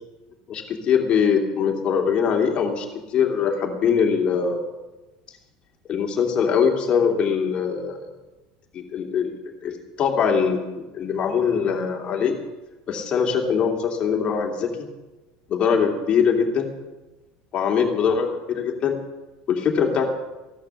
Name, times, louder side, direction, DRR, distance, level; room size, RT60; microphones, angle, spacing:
voice 1, 0.5-4.6 5.9-8.1 8.7-10.6 10.9-12.4 12.9-14.9 15.5-16.7 17.5-19.0 19.5-20.1, left 6 dB, 30° left, 1 dB, 2.8 m, -22 dB
15.5 x 11.5 x 7.2 m, 1.1 s
cardioid pair, 165°, 4 cm